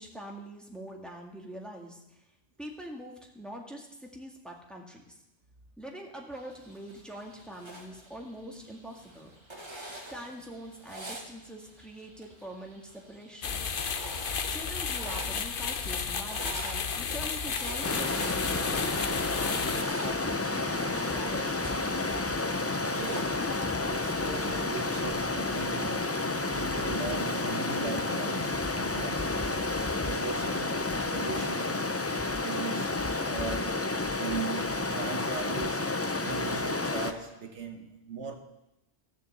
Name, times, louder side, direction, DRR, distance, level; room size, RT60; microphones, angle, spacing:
voice 1, 0.0-2.2 2.6-5.2 5.8-9.3 10.1-13.6 14.5-21.7, equal, ahead, 1.7 m, -44 dB
sound 1, 6.3-24.4, right 1 dB, 25° right, 1.5 m, -46 dB
sound 2, 13.4-19.8, left 6 dB, 55° left, 0.9 m, -33 dB
Stream, 17.8-37.1, left 3 dB, 20° left, 0.4 m, -30 dB
voice 2, 22.9-29.6 30.0-31.9 32.4-38.3, right 5 dB, 85° right, 1.5 m, -39 dB
14.5 x 6.8 x 7.6 m
omnidirectional pair, 1.2 m